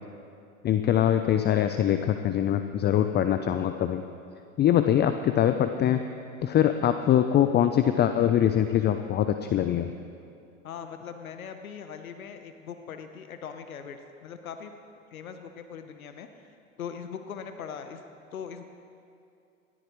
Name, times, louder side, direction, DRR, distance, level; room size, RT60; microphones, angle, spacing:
voice 1, 0.6-4.0 4.6-6.0 6.4-9.9, left 10 dB, 25° left, 8 dB, 0.5 m, -23 dB
voice 2, 10.6-14.7 15.1-16.3 16.8-18.0 18.3-18.7, left 7 dB, 85° left, 7 dB, 1.0 m, -40 dB
20.0 x 13.5 x 3.1 m, 2.6 s
hypercardioid pair, 85°, 41 cm